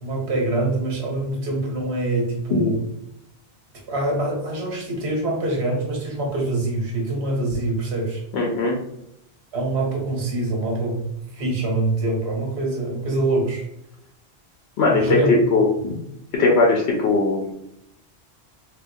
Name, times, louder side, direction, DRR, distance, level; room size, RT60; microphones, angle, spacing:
voice 1, 0.0-2.8 3.9-8.2 9.5-11.1 11.4-13.6 14.9-15.4, right 2 dB, 75° right, 0 dB, 1.2 m, -24 dB
voice 2, 8.3-8.8 14.8-15.2 15.5-16.0 16.4-17.5, left 3 dB, 80° left, -1 dB, 0.9 m, -19 dB
3.6 x 2.5 x 2.6 m, 0.80 s
omnidirectional pair, 1.1 m